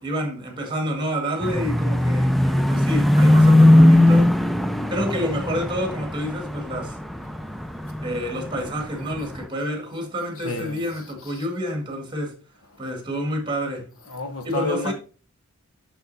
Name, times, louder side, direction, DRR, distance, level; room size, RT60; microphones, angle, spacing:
voice 1, 0.0-4.4 4.9-7.0 8.0-12.4 12.8-13.9 14.4-14.9, equal, 20° right, 1.8 m, -28 dB
sound 1, 1.4-8.5 8.8-9.4, left 1 dB, ahead, 0.3 m, -18 dB
voice 2, 10.4-10.9 11.2-11.3 14.1-14.9, left 2 dB, 75° left, 1.1 m, -30 dB
6.6 x 6.4 x 4.0 m
head